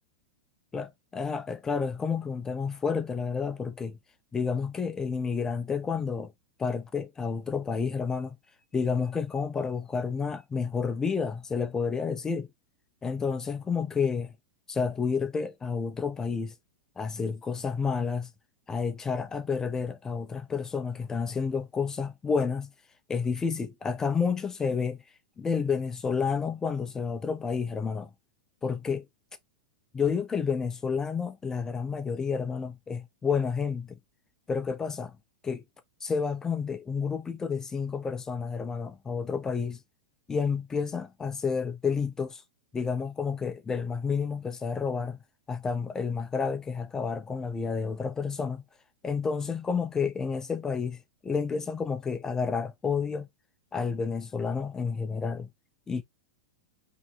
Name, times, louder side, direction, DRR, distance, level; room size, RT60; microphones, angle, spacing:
voice 1, 0.7-4.0 4.3-6.3 6.6-8.4 8.7-12.5 13.0-14.3 14.7-16.5 17.0-18.3 18.7-22.7 23.1-25.0 25.4-28.1 28.6-29.1 29.9-34.0 34.5-35.2 35.4-35.6 36.0-39.8 40.3-42.4 42.7-45.2 45.5-48.6 49.0-53.3 53.7-55.5 55.9-56.0, left 5 dB, 15° left, 0.8 m, -30 dB
4.9 x 3.5 x 2.8 m
supercardioid pair, 140°, 4 cm